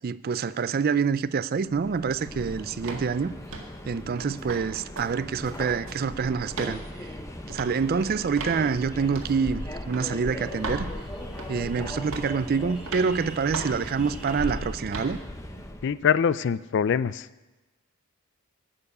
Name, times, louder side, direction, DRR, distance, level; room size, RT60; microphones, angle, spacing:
voice 1, 0.0-3.3 3.9-7.1 7.5-10.9 11.5-15.2, right 5 dB, 45° right, 0.4 m, -27 dB
Subway metro underground, 1.6-16.0, left 1 dB, 15° left, 0.7 m, -39 dB
sound 1, 2.8-3.1 3.5-3.8 4.2-4.6 5.0-5.1 5.4-6.1 6.5-6.8 7.5-7.7 8.4-8.6 9.2-9.3 9.9-10.1 10.6-10.9 11.4-11.7 12.1-12.4 12.9-13.1 13.5-13.8 14.3-14.5 14.9-15.1, right 3 dB, 60° right, 1.9 m, -36 dB
sound 2, 5.4-14.7, equal, 5° right, 1.7 m, -44 dB
voice 2, 15.8-17.3, left 7 dB, 55° left, 0.3 m, -24 dB
12.0 x 7.0 x 8.4 m
head